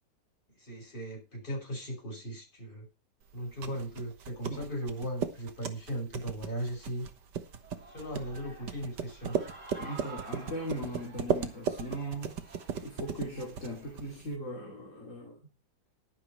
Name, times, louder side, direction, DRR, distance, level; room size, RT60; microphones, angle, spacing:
voice 1, 0.6-2.9 3.3-7.1 7.9-9.4, right 1 dB, 30° left, 5.8 m, -37 dB
sound 1, 3.3-14.3, right 7 dB, 85° right, 1.9 m, -37 dB
Human voice / Cheering, 7.5-14.1, right 2 dB, 45° right, 4.6 m, -51 dB
voice 2, 9.8-15.4, equal, 50° left, 3.1 m, -39 dB
11.5 x 9.4 x 4.5 m
omnidirectional pair, 1.8 m